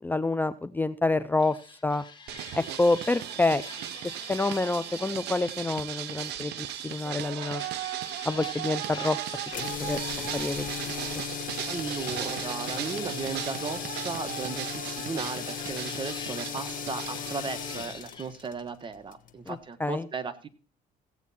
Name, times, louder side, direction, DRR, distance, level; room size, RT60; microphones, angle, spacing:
voice 1, 0.0-1.6 1.8-2.0 2.5-3.6 4.3-7.6 8.2-9.2 9.8-10.7 11.2-11.3 19.5-20.0, left 2 dB, 10° left, 13 dB, 0.5 m, -27 dB
sound 1, 1.4-7.1 7.4-18.3, left 5 dB, 25° left, 2.0 m, -46 dB
sound 2, 2.3-17.8, right 14 dB, 80° right, 0.7 m, -37 dB
sound 3, 9.5-19.6, left 8 dB, 55° left, 1.1 m, -37 dB
voice 2, 11.6-20.5, right 5 dB, 30° right, 9 dB, 1.4 m, -36 dB
15.5 x 8.2 x 4.2 m, 0.37 s
cardioid pair, 110°, 17 cm